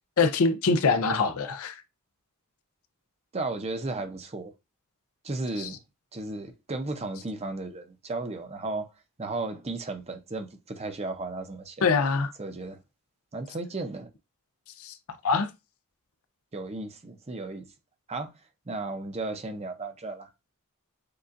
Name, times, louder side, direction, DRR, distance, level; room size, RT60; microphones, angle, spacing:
voice 1, 0.2-1.8 5.6-5.7 11.8-12.3 14.8-14.9 15.2-15.5, left 4 dB, 75° left, 0.5 m, -24 dB
voice 2, 3.3-4.5 5.2-5.8 6.1-8.9 9.2-11.8 12.4-12.8 13.3-14.1 16.5-17.7 18.1-18.3 18.7-20.3, right 2 dB, 30° right, 0.7 m, -34 dB
6.6 x 2.4 x 2.5 m
head